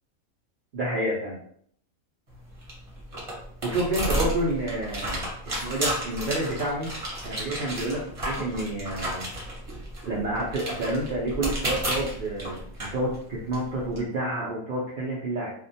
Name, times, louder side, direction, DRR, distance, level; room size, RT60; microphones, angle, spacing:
voice 1, 0.7-1.4 3.6-5.3 5.6-6.9 7.2-9.3 10.0-15.5, right 1 dB, 80° right, -5 dB, 0.4 m, -29 dB
sound 1, 2.3-14.0, right 1 dB, 35° right, 0.6 m, -33 dB
2.4 x 2.1 x 2.6 m, 0.63 s
omnidirectional pair, 1.4 m